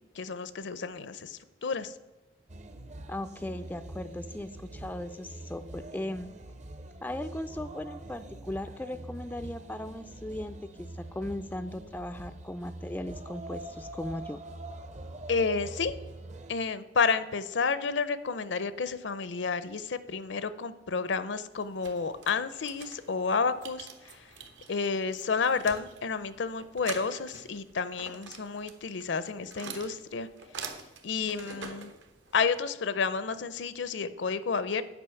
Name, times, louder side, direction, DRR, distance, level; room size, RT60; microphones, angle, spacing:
voice 1, 0.0-1.9 15.3-15.9 16.5-24.3 24.7-30.3 31.0-31.9 32.3-34.8, left 5 dB, 70° left, 14 dB, 0.6 m, -30 dB
sound 1, 2.5-16.5, right 1 dB, 40° right, 0.7 m, -44 dB
voice 2, 3.1-6.3 7.0-14.4, left 1 dB, 10° left, 10 dB, 0.3 m, -38 dB
sound 2, 21.5-32.6, right 5 dB, 70° right, 1.2 m, -46 dB
9.8 x 5.1 x 7.0 m, 1.0 s
head